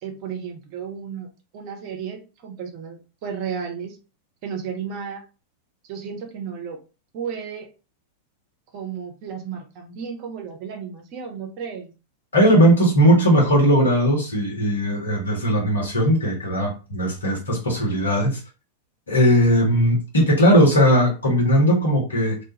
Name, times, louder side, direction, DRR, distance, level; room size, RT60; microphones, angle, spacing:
voice 1, 0.0-1.3 1.5-4.0 4.4-5.2 5.9-6.8 7.1-7.7 8.7-11.9, right 7 dB, 45° right, 0.7 m, -33 dB
voice 2, 12.3-18.4 19.1-22.4, equal, 70° left, 1.1 m, -18 dB
2.4 x 2.3 x 2.8 m
figure-of-eight pair, 90°, 0 cm